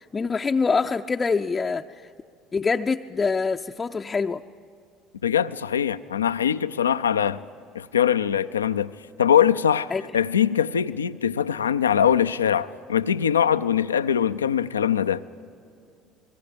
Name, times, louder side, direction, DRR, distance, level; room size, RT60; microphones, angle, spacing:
voice 1, 0.1-2.1 2.5-4.4 9.9-10.0, left 4 dB, 25° left, 0.5 m, -25 dB
voice 2, 5.2-7.4 7.7-8.9 9.2-15.2, left 8 dB, 90° left, 0.5 m, -22 dB
27.5 x 21.5 x 5.2 m
hypercardioid pair, 65°, 0 cm